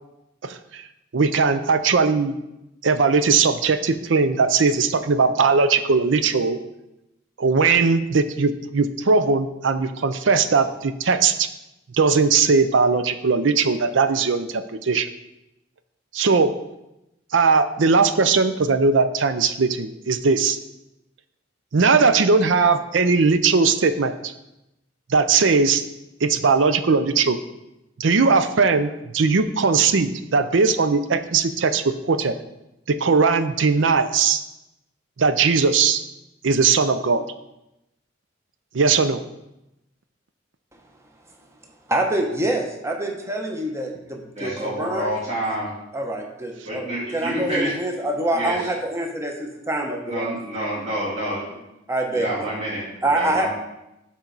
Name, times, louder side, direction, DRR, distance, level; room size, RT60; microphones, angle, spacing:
voice 1, 0.4-0.8 1.1-2.4 2.8-6.6 7.4-11.5 11.9-15.1 16.1-16.5 17.3-20.6 21.7-24.3 25.1-25.8 26.2-27.4 28.0-32.4 32.9-34.4 35.2-36.0 36.4-37.3 38.7-39.2, right 4 dB, 70° right, 10 dB, 0.6 m, -19 dB
voice 2, 41.9-45.1 45.9-46.8 47.1-50.3 51.9-52.3 53.0-53.5, right 1 dB, 15° right, 2 dB, 0.9 m, -25 dB
voice 3, 44.3-45.7 46.6-47.7 48.0-48.7 50.0-51.4 52.1-53.5, right 1 dB, 35° right, -8 dB, 3.0 m, -28 dB
11.5 x 4.4 x 4.0 m, 0.91 s
head